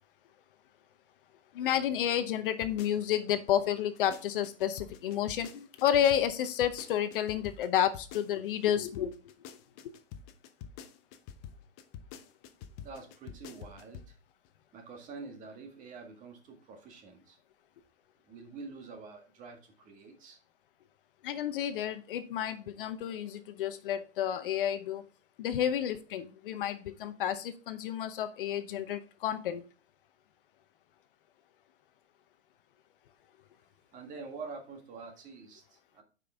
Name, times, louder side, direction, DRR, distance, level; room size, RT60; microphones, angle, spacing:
voice 1, 1.5-9.1 21.2-25.1 25.4-29.6, left 10 dB, 50° left, 0.8 m, -31 dB
sound 1, 2.6-3.4 3.8-8.7 8.9-14.1 14.4-14.5, left 8 dB, 15° left, 0.4 m, -47 dB
voice 2, 12.8-14.2 14.7-17.4 18.2-20.4 33.9-36.0, right 4 dB, 20° right, 1.8 m, -46 dB
9.4 x 5.3 x 3.5 m
hypercardioid pair, 150°, 34 cm